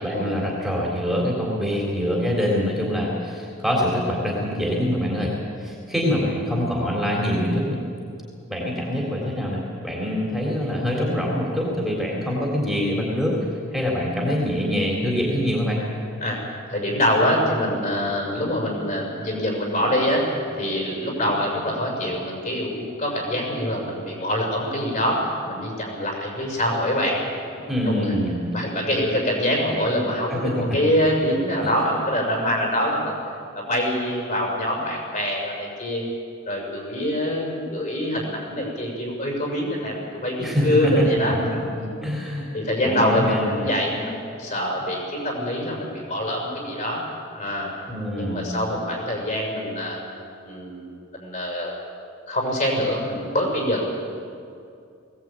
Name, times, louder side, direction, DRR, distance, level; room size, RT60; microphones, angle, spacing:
voice 1, 0.0-5.3 5.6-7.8 8.5-13.3 13.7-15.8 27.7-28.5 30.3-30.7 31.6-31.7 40.4-41.6 42.0-42.5 42.8-43.7 47.9-48.8, equal, ahead, -4 dB, 3.6 m, -24 dB
voice 2, 16.7-20.2 20.6-27.2 27.8-28.1 28.5-33.2 33.5-36.0 36.5-40.0 40.2-41.3 41.7-41.9 42.5-47.0 47.3-47.7 48.2-50.0 50.4-51.7 52.3-53.9, equal, 40° left, -2 dB, 6.6 m, -25 dB
20.0 x 18.5 x 8.9 m, 2.5 s
head